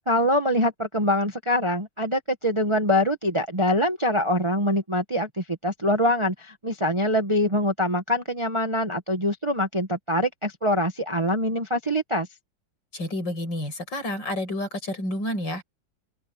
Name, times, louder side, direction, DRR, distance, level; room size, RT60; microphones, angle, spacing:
voice 1, 0.1-12.3, left 1 dB, 15° right, 1.2 m, -24 dB
voice 2, 12.9-15.6, left 1 dB, 65° left, 7.7 m, -30 dB
open air
omnidirectional pair, 2.1 m